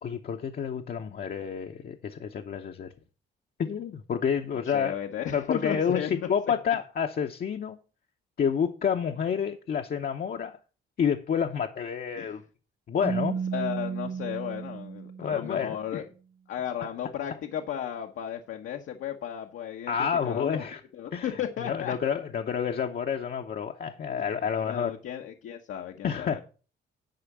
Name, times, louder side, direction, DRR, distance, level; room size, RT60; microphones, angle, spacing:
voice 1, 0.0-2.9 3.6-4.9 5.3-7.8 8.4-10.6 11.0-12.4 12.9-13.4 15.2-16.0 16.8-16.9 19.9-20.8 21.1-21.3 21.6-24.9 26.0-26.4, left 7 dB, 50° left, 0.9 m, -29 dB
voice 2, 4.7-6.3 12.2-12.4 13.5-16.0 16.5-19.9 20.2-20.6 20.9-22.0 24.2-24.3 24.6-26.4, left 9 dB, 80° left, 1.1 m, -34 dB
Keyboard (musical), 13.0-15.8, right 6 dB, 25° right, 1.2 m, -33 dB
10.5 x 4.4 x 7.3 m
cardioid pair, 90°, 20 cm